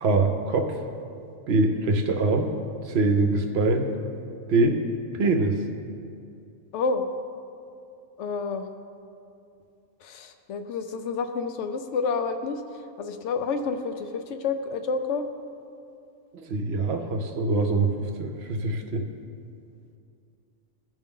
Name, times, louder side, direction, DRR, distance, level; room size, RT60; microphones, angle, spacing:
voice 1, 0.0-0.8 1.5-2.5 2.8-3.9 4.5-4.8 5.1-5.5 16.3-19.0, right 3 dB, 60° right, 5 dB, 0.8 m, -23 dB
voice 2, 6.7-7.0 8.2-8.7 10.0-12.6 13.0-15.3, left 4 dB, 70° left, 7 dB, 0.9 m, -29 dB
14.5 x 5.3 x 3.7 m, 2.6 s
omnidirectional pair, 1.3 m